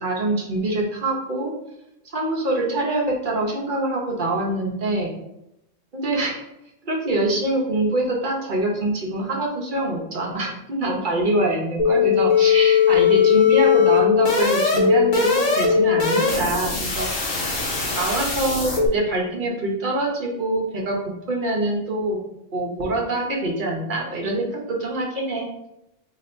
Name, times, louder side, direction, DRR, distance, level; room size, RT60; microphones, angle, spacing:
voice 1, 0.0-1.5 2.0-5.1 5.9-6.4 6.8-17.4 17.9-21.0 21.3-22.2 22.5-25.7, right 2 dB, 45° right, -1 dB, 0.9 m, -24 dB
sound 1, 11.8-18.9, left 7 dB, 85° left, 1.3 m, -19 dB
3.0 x 2.7 x 4.2 m, 0.83 s
omnidirectional pair, 1.3 m